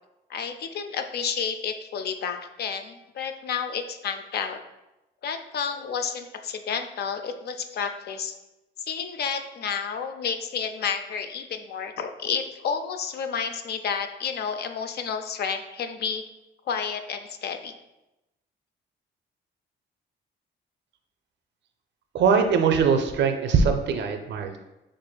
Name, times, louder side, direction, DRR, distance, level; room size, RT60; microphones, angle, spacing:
voice 1, 0.3-4.6 5.2-8.4 8.9-16.2 16.7-17.7, left 6 dB, 55° left, 7 dB, 0.4 m, -31 dB
voice 2, 22.1-24.6, right 5 dB, 65° right, 6 dB, 0.5 m, -21 dB
5.9 x 2.5 x 2.2 m, 0.97 s
cardioid pair, 90°, 20 cm